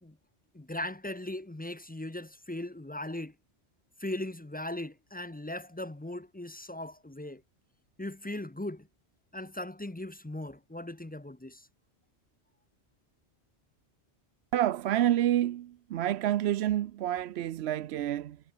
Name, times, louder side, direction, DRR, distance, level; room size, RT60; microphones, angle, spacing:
voice 1, 0.5-3.3 4.0-7.4 8.0-8.9 9.3-11.7, left 1 dB, 10° left, 0.6 m, -38 dB
voice 2, 14.5-18.4, right 12 dB, 75° right, 0.8 m, -28 dB
omnidirectional pair, 1.1 m